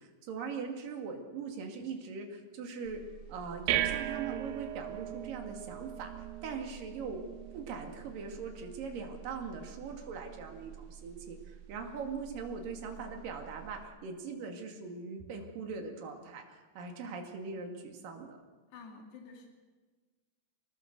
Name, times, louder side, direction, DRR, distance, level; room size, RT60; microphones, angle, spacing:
voice 1, 0.0-3.0 3.3-6.1 6.4-7.2 7.5-18.4, right 5 dB, 60° right, 3 dB, 3.8 m, -41 dB
sound 1, 2.9-13.8, right 13 dB, 80° right, 2.8 m, -40 dB
voice 2, 18.7-19.5, left 4 dB, 85° left, 2 dB, 4.4 m, -49 dB
26.0 x 18.5 x 6.7 m, 1.3 s
omnidirectional pair, 4.7 m